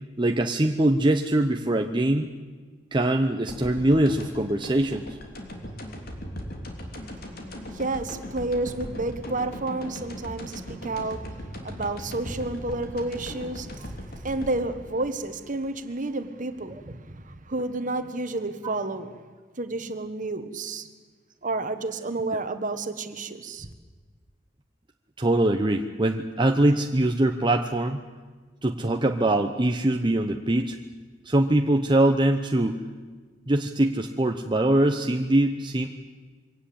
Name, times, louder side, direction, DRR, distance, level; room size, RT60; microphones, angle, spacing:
voice 1, 0.2-2.3 2.9-5.2 25.2-28.0 28.6-30.8 31.2-32.8 33.5-35.9, right 1 dB, 25° right, 4 dB, 0.9 m, -23 dB
sound 1, 3.5-16.3, equal, 55° left, 3.3 m, -39 dB
voice 2, 7.0-19.1 19.6-20.9 21.4-23.7, right 2 dB, 45° right, 10 dB, 1.5 m, -31 dB
23.5 x 17.5 x 8.7 m, 1.4 s
head